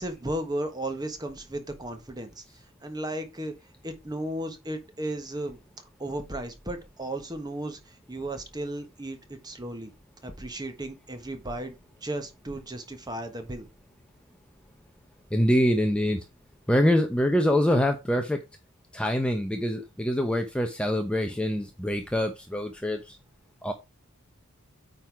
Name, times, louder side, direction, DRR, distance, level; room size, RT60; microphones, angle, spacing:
voice 1, 0.0-2.4 2.8-3.5 3.8-5.6 6.0-9.9 10.2-11.7 12.0-13.7, right 1 dB, 20° right, 1.3 m, -35 dB
voice 2, 15.3-16.2 16.7-18.4 18.9-23.2 23.6-23.7, equal, 5° left, 0.7 m, -25 dB
9.0 x 3.9 x 4.7 m
head